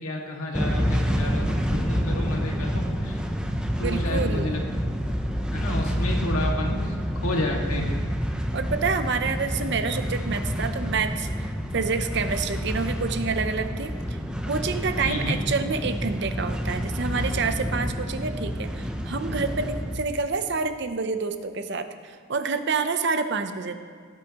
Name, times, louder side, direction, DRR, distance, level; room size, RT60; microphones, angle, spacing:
voice 1, 0.0-3.2 3.8-4.6 5.5-7.0 7.2-7.9 15.0-15.4, left 1 dB, 90° left, 0 dB, 1.9 m, -30 dB
sound 1, 0.5-20.0, equal, 5° right, 0.5 m, -28 dB
voice 2, 3.8-4.6 8.5-14.2 14.5-23.8, right 4 dB, 50° right, 9 dB, 0.6 m, -28 dB
17.5 x 8.7 x 3.0 m, 2.2 s
head